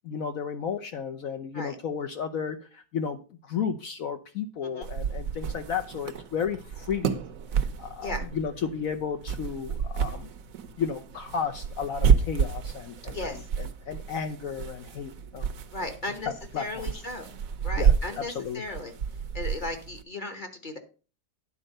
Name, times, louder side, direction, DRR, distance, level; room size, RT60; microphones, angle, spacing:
voice 1, 0.1-7.2 7.8-10.3 10.8-15.5 15.8-15.9 16.5-17.0 17.8-18.6, left 7 dB, 65° left, 6 dB, 1.1 m, -33 dB
sound 1, 4.8-20.0, right 7 dB, 65° right, 1.1 m, -30 dB
voice 2, 15.7-17.3 17.6-18.9 19.3-20.8, left 2 dB, 35° left, 7 dB, 1.1 m, -36 dB
10.0 x 4.4 x 6.4 m, 0.36 s
omnidirectional pair, 1.7 m